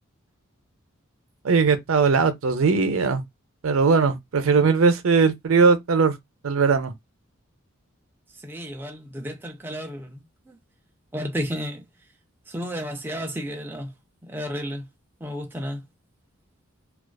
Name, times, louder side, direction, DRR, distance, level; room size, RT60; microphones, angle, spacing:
voice 1, 1.4-3.2 3.6-6.2 6.4-6.9, right 5 dB, 80° right, 0.5 m, -19 dB
voice 2, 8.4-10.6 11.1-11.8 12.5-13.9 14.2-14.8 15.2-15.8, equal, 10° right, 0.4 m, -32 dB
2.4 x 2.3 x 2.2 m
head